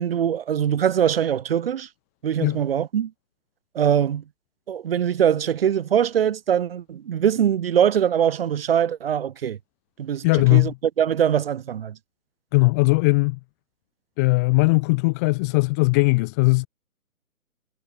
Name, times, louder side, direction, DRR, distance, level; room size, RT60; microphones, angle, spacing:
voice 1, 0.0-1.9 2.2-3.1 3.7-4.2 4.7-9.6 10.0-10.2 10.5-11.9, right 9 dB, 40° right, 2.9 m, -22 dB
voice 2, 10.2-10.8 12.5-13.4 14.2-16.7, left 27 dB, 10° left, 0.8 m, -19 dB
figure-of-eight pair, 135°, 42 cm